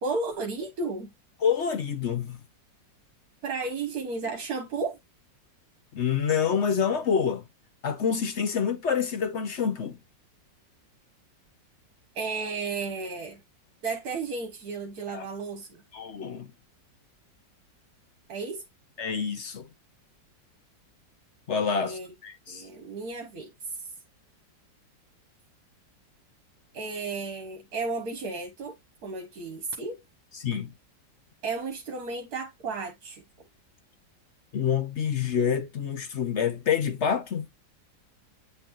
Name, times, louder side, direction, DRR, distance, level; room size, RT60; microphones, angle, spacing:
voice 1, 0.0-1.1 3.4-5.0 12.1-13.4 13.8-15.7 18.3-18.6 21.8-22.1 22.5-23.5 26.7-28.7 29.0-30.0 31.4-33.2, right 4 dB, 60° right, 1.5 m, -33 dB
voice 2, 1.4-2.4 5.9-7.4 7.8-10.0 15.1-15.2 15.9-16.5 19.0-19.7 21.5-22.7 30.4-30.7 34.5-37.5, left 7 dB, 50° left, 0.9 m, -27 dB
9.2 x 3.9 x 3.0 m
omnidirectional pair, 2.0 m